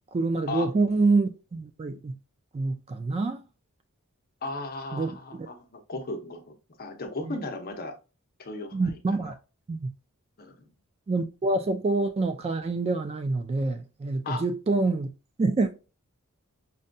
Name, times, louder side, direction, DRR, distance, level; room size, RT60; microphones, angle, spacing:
voice 1, 0.1-2.2 2.5-3.4 4.9-5.5 7.2-7.3 8.7-9.3 9.7-9.9 11.1-15.1 15.4-15.7, right 3 dB, 25° right, 0.3 m, -26 dB
voice 2, 4.4-7.9 8.4-9.2 10.4-10.7 14.2-14.4, left 2 dB, 45° left, 0.7 m, -36 dB
5.3 x 2.2 x 2.6 m
head